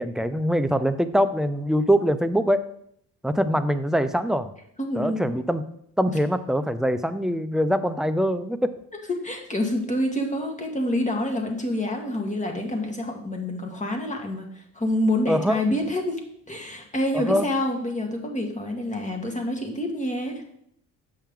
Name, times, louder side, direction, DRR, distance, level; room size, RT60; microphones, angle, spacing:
voice 1, 0.0-2.6 3.2-4.5 5.0-5.6 6.0-8.7 15.3-15.6 17.1-17.5, equal, ahead, 10 dB, 0.4 m, -23 dB
voice 2, 4.8-5.2 9.1-16.2 16.5-20.4, left 1 dB, 20° left, 3 dB, 1.6 m, -27 dB
7.3 x 5.7 x 3.7 m, 0.70 s
cardioid pair, 80°, 36 cm